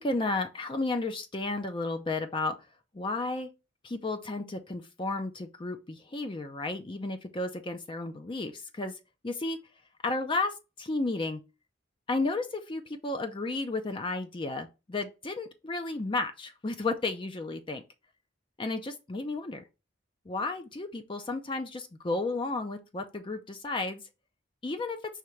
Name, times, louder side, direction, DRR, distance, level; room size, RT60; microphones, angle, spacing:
voice 1, 0.0-2.5 2.9-3.5 3.8-9.6 10.0-11.4 12.1-17.8 18.6-19.6 20.3-24.0 24.6-25.0, left 2 dB, 25° left, 0.5 m, -33 dB
5.0 x 3.3 x 3.1 m
head